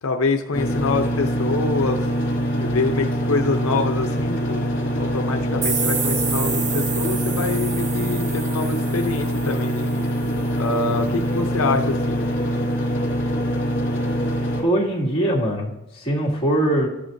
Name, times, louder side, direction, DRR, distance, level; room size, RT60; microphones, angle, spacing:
voice 1, 0.0-2.1 2.6-9.9 10.6-12.3, left 3 dB, 85° left, 5 dB, 0.6 m, -25 dB
sound 1, 0.5-14.6, equal, 50° left, 2.8 m, -24 dB
sound 2, 5.6-10.3, right 6 dB, 35° right, 0.7 m, -29 dB
voice 2, 14.6-16.9, right 1 dB, 25° left, -6 dB, 2.4 m, -22 dB
13.0 x 11.5 x 2.7 m, 0.95 s
head